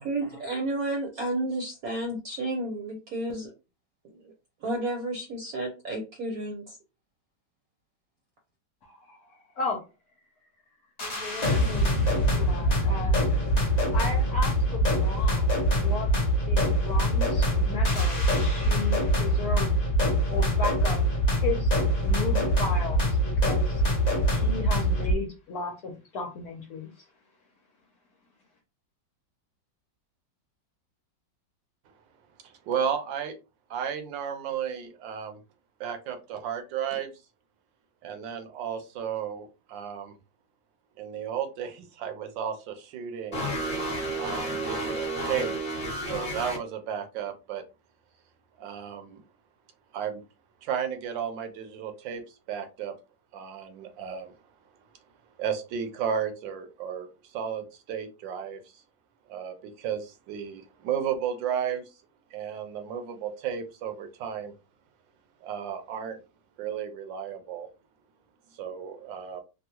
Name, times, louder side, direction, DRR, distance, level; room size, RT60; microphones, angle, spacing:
voice 1, 0.0-3.5 4.0-4.3 4.6-6.8, right 2 dB, 60° right, 1.0 m, -32 dB
voice 2, 8.8-9.2 9.6-9.8 11.0-13.2 13.9-16.1 16.5-19.7 20.3-21.0 21.4-21.7 22.0-23.1 23.4-23.8 24.3-26.9, left 3 dB, 65° left, 1.1 m, -35 dB
sound 1, 11.0-25.1, equal, 45° left, 0.5 m, -24 dB
voice 3, 32.7-33.4 33.7-35.4 35.8-37.1 38.0-40.1 41.0-43.4 44.1-45.6 46.1-47.6 48.6-49.2 49.9-50.2 50.6-52.9 53.3-54.3 55.4-58.6 59.3-61.9 62.3-64.5 65.4-66.2 66.6-67.7 68.6-69.4, right 8 dB, 80° right, 1.4 m, -33 dB
sound 2, 43.3-46.6, right 1 dB, 20° left, 1.2 m, -31 dB
3.6 x 2.2 x 2.8 m
omnidirectional pair, 2.0 m